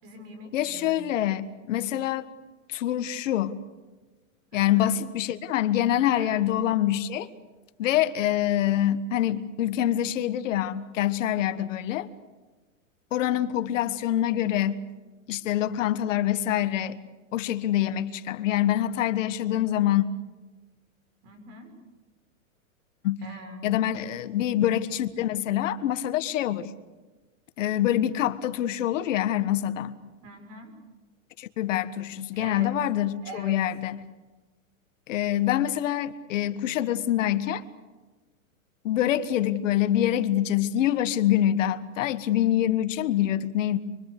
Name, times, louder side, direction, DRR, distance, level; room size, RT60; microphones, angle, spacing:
voice 1, 0.0-0.9 4.5-4.9 6.1-6.4 21.2-21.7 23.2-23.7 30.2-30.7 32.3-32.7 33.2-33.6, right 1 dB, 35° right, 6 dB, 6.8 m, -43 dB
voice 2, 0.5-2.3 2.7-3.5 4.5-7.3 7.8-12.1 13.1-14.8 15.3-17.0 17.3-20.1 23.0-23.2 23.6-26.7 27.6-30.0 31.4-34.0 35.1-37.6 38.8-43.8, left 12 dB, 65° left, 11 dB, 1.6 m, -25 dB
26.0 x 25.0 x 6.8 m, 1.3 s
supercardioid pair, 160°, 41 cm